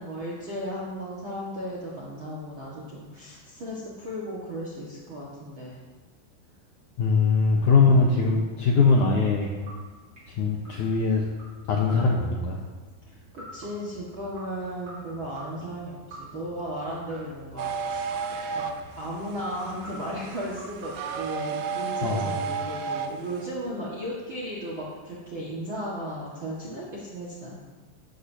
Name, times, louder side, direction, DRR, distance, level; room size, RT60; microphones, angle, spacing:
voice 1, 0.0-5.8 13.3-18.1 18.5-18.6 19.0-27.6, equal, 55° right, -5 dB, 1.4 m, -35 dB
voice 2, 7.0-9.5 10.3-11.2 11.7-12.6 22.0-22.3, left 4 dB, 75° left, -1 dB, 1.9 m, -21 dB
sound 1, 8.9-21.2, equal, 25° right, 4.8 m, -47 dB
sound 2, 17.6-23.5, right 5 dB, 75° right, 2.0 m, -33 dB
15.0 x 11.5 x 2.8 m, 1.3 s
omnidirectional pair, 4.7 m